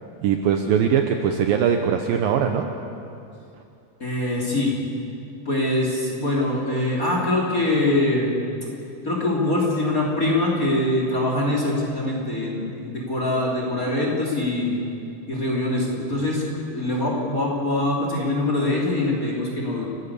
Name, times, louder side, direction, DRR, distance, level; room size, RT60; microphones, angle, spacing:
voice 1, 0.2-2.7, right 8 dB, 70° right, 5 dB, 2.3 m, -21 dB
voice 2, 4.0-4.8 5.4-8.3 9.0-14.8 15.3-19.9, left 1 dB, 20° left, -2 dB, 3.1 m, -23 dB
29.5 x 12.5 x 8.4 m, 2.7 s
omnidirectional pair, 4.8 m